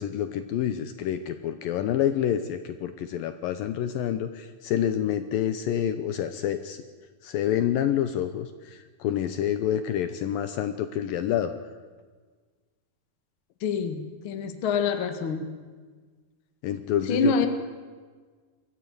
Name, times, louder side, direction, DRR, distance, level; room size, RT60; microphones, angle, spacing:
voice 1, 0.0-6.8 7.2-11.5 16.6-17.5, left 10 dB, 75° left, 10 dB, 2.3 m, -28 dB
voice 2, 13.6-15.6 17.1-17.5, left 5 dB, 50° left, 7 dB, 1.6 m, -26 dB
23.5 x 14.0 x 9.5 m, 1.5 s
omnidirectional pair, 4.6 m